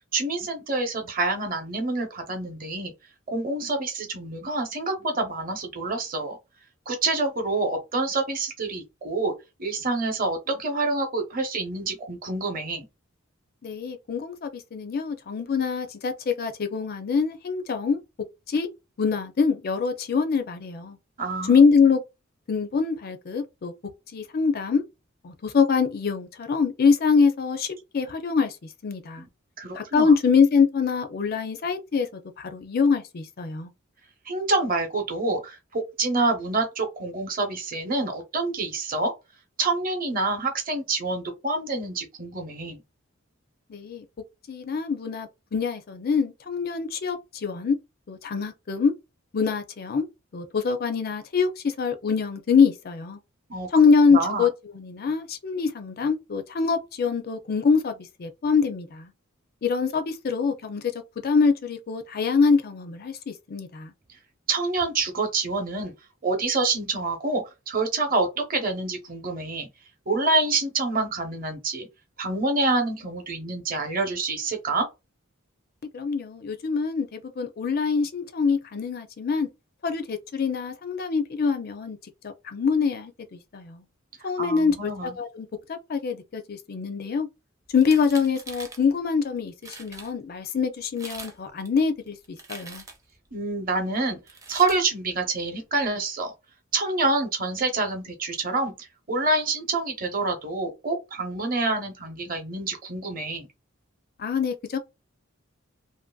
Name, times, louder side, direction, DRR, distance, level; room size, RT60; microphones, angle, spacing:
voice 1, 0.1-2.9 3.3-6.4 6.9-9.3 9.6-12.9 21.2-21.6 29.2-29.3 29.6-30.1 34.3-39.1 39.6-42.8 53.5-53.7 54.1-54.5 64.5-65.9 66.2-69.7 70.1-71.9 72.2-74.9 84.4-85.1 93.3-94.2 94.5-96.3 96.7-103.5, right 3 dB, 40° right, 0.8 m, -27 dB
voice 2, 13.6-18.0 18.5-18.7 19.0-21.0 21.5-22.0 22.5-23.7 24.1-24.8 25.2-28.6 28.8-29.3 29.8-33.7 43.7-44.0 44.5-47.8 48.1-48.9 49.3-50.1 50.3-53.2 53.7-59.1 59.6-60.8 61.2-63.9 75.9-79.5 79.8-82.0 82.2-83.8 84.2-87.3 87.7-92.8 104.2-104.8, left 5 dB, 45° left, 0.4 m, -24 dB
sound 1, 87.7-88.8 89.4-89.5 89.6-90.1 90.8-91.4 91.6-93.1 94.3-94.8, right 3 dB, 15° right, 0.5 m, -42 dB
2.8 x 2.6 x 2.3 m
head